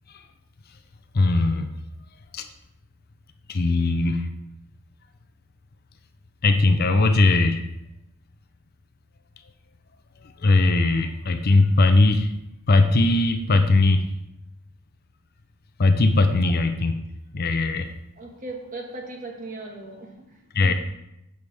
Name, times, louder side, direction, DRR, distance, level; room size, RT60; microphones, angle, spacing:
voice 1, 1.1-1.7 2.3-2.5 3.5-4.3 6.4-7.7 10.4-12.3 12.7-14.1 15.8-17.0 17.3-17.9 20.5-20.7, left 2 dB, 45° left, 8 dB, 0.6 m, -19 dB
voice 2, 18.2-20.7, right 2 dB, 35° right, 1 dB, 1.6 m, -38 dB
11.0 x 7.9 x 3.5 m, 0.86 s
head